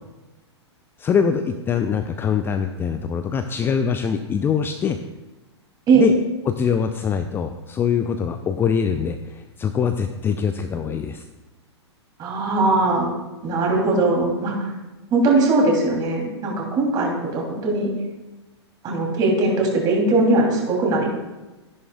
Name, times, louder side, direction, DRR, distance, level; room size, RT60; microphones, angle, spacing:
voice 1, 1.0-5.0 5.9-6.1 6.5-11.2, left 7 dB, 15° left, 8 dB, 0.4 m, -23 dB
voice 2, 12.2-13.1 13.4-14.7 15.1-17.9 18.8-21.1, right 2 dB, 25° right, -1 dB, 3.1 m, -20 dB
14.0 x 11.0 x 2.3 m, 1.1 s
figure-of-eight pair, 105°, 15 cm